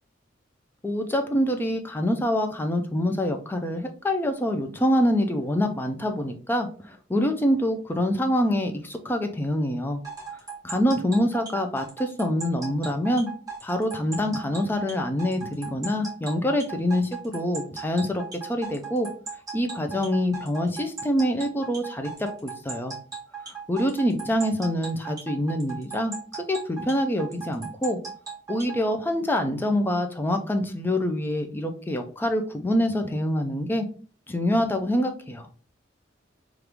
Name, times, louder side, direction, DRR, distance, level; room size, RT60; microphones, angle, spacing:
voice 1, 0.8-10.0 10.6-13.3 13.6-19.1 19.5-22.9 23.5-26.1 26.5-28.0 28.5-33.9 34.3-35.5, equal, 10° left, 5 dB, 0.3 m, -25 dB
sound 1, 10.0-28.8, right 5 dB, 20° right, 1.1 m, -37 dB
3.0 x 2.4 x 3.3 m, 0.40 s
head